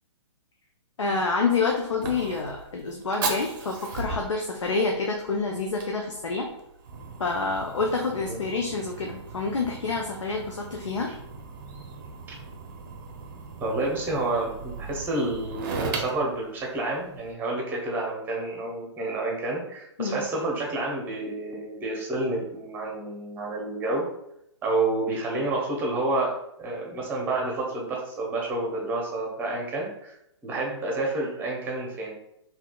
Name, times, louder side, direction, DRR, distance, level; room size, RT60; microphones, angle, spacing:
voice 1, 1.0-6.5 7.2-11.1 20.0-20.2, left 4 dB, 90° left, 1 dB, 0.5 m, -28 dB
Fire, 1.1-17.3, right 4 dB, 45° right, 0.6 m, -38 dB
voice 2, 13.6-24.1 24.6-26.3 26.6-30.1 30.4-32.1, right 2 dB, 15° right, -1 dB, 0.8 m, -29 dB
3.5 x 2.8 x 2.3 m, 0.79 s
hypercardioid pair, 130°, 15 cm